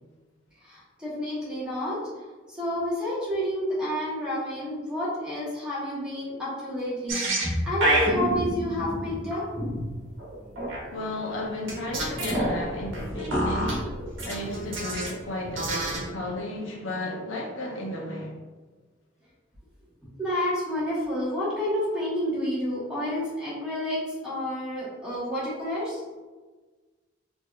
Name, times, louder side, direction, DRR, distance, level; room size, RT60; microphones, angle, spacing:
voice 1, 0.6-2.0 2.5-9.4 17.1-17.2 20.2-26.0, left 1 dB, 5° right, -9 dB, 1.2 m, -29 dB
sound 1, 7.1-10.8 11.7-15.2 15.4-16.1, right 1 dB, 85° right, 1.1 m, -28 dB
voice 2, 10.9-13.9 14.2-18.4, left 1 dB, 85° left, -1 dB, 0.7 m, -33 dB
4.5 x 2.8 x 2.4 m, 1.3 s
head